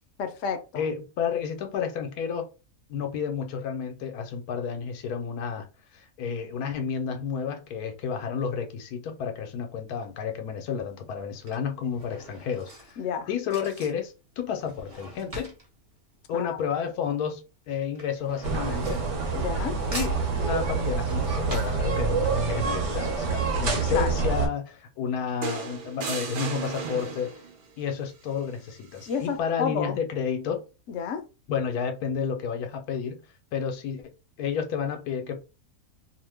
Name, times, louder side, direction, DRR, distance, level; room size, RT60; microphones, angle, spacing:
voice 1, 0.2-0.8 13.0-13.3 16.3-16.5 19.4-19.8 23.9-24.1 29.1-30.0 30.9-31.2, left 6 dB, 65° left, 0.8 m, -30 dB
voice 2, 0.7-2.5 2.9-5.7 5.9-15.5 16.3-19.0 19.9-27.3 27.8-30.7 31.5-33.2 33.5-34.0 34.4-35.4, left 7 dB, 85° left, 1.2 m, -31 dB
Drawer open or close / Cutlery silverware, 9.9-10.3 11.1-17.0 17.3-19.7 19.9-22.4 22.9-23.0 23.2-23.3, right 1 dB, 30° right, 0.8 m, -43 dB
sound 1, 18.4-24.5, right 4 dB, 60° right, 1.0 m, -27 dB
sound 2, 25.4-27.6 29.0-29.2, right 5 dB, 90° right, 0.4 m, -35 dB
2.8 x 2.1 x 3.3 m
omnidirectional pair, 1.6 m